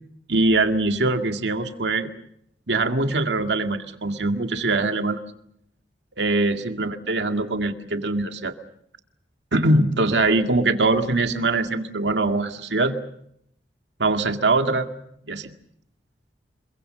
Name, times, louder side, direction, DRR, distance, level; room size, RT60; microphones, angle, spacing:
voice 1, 0.3-2.1 2.7-5.2 6.2-8.5 9.5-12.9 14.0-14.9 15.3-15.5, right 2 dB, 80° right, 6 dB, 2.1 m, -22 dB
26.5 x 23.0 x 6.7 m, 0.73 s
head